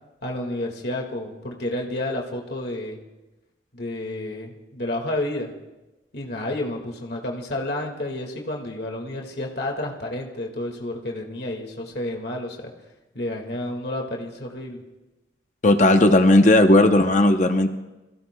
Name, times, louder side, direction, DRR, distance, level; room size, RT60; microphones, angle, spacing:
voice 1, 0.2-3.0 3.7-5.5 6.1-12.7 13.1-14.8, left 1 dB, 55° left, 1 dB, 1.9 m, -30 dB
voice 2, 15.6-17.7, left 1 dB, 40° left, 6 dB, 0.7 m, -15 dB
28.5 x 22.5 x 2.2 m, 1.1 s
head